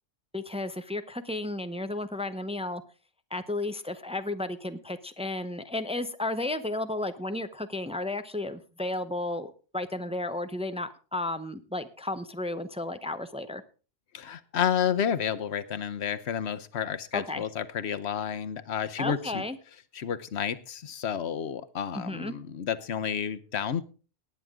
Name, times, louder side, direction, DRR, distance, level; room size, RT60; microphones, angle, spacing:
voice 1, 0.3-2.8 3.3-13.6 17.1-17.4 19.0-19.6 21.9-22.3, left 2 dB, 5° right, 10 dB, 0.7 m, -33 dB
voice 2, 14.1-19.4 19.9-23.8, left 8 dB, 85° left, 13 dB, 1.1 m, -30 dB
18.5 x 9.3 x 3.7 m, 0.36 s
omnidirectional pair, 1.1 m